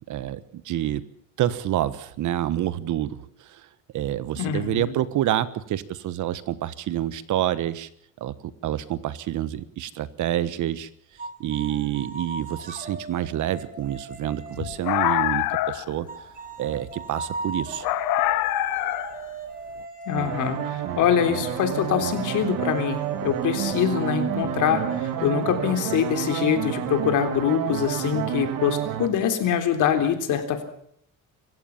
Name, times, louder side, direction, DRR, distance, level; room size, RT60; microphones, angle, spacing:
voice 1, 0.1-1.1 1.4-3.7 3.9-7.9 8.2-10.9 11.4-16.1 16.6-17.8, right 12 dB, 65° right, 15 dB, 1.4 m, -28 dB
voice 2, 4.4-4.9 20.1-30.6, left 8 dB, 65° left, 7 dB, 3.7 m, -24 dB
sound 1, 11.2-15.1 16.1-27.4, right 4 dB, 25° right, 3.8 m, -38 dB
sound 2, 14.5-15.9 17.8-19.2, left 17 dB, 85° left, 0.8 m, -25 dB
sound 3, 20.1-29.1, right 10 dB, 85° right, 2.8 m, -29 dB
26.0 x 15.5 x 7.2 m, 0.67 s
cardioid pair, 145°, 33 cm